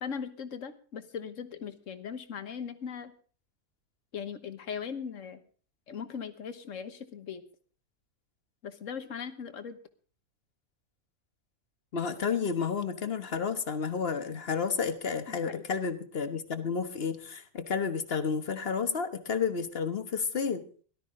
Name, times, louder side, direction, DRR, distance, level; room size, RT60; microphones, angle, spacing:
voice 1, 0.0-3.1 4.1-5.4 5.9-7.4 8.6-9.8 15.3-15.6, left 7 dB, 65° left, 10 dB, 1.5 m, -39 dB
voice 2, 11.9-20.6, left 6 dB, 45° left, 9 dB, 1.4 m, -31 dB
18.0 x 12.5 x 3.8 m, 0.42 s
omnidirectional pair, 1.4 m